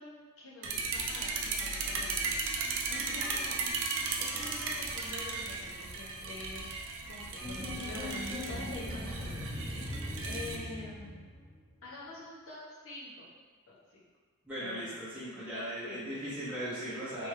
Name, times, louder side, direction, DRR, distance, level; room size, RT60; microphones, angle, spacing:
voice 1, 0.0-3.8 4.2-6.7 7.1-8.2 8.5-11.3 11.8-13.3 13.9-14.0 14.6-14.9 15.3-16.0 17.2-17.3, left 2 dB, 65° left, -7 dB, 1.1 m, -47 dB
sound 1, 0.6-10.6, right 4 dB, 60° right, 0.4 m, -36 dB
sound 2, 7.4-11.7, left 1 dB, 20° left, 1.0 m, -40 dB
voice 2, 14.4-17.3, right 1 dB, 5° right, -11 dB, 0.8 m, -38 dB
3.4 x 3.3 x 3.2 m, 1.4 s
head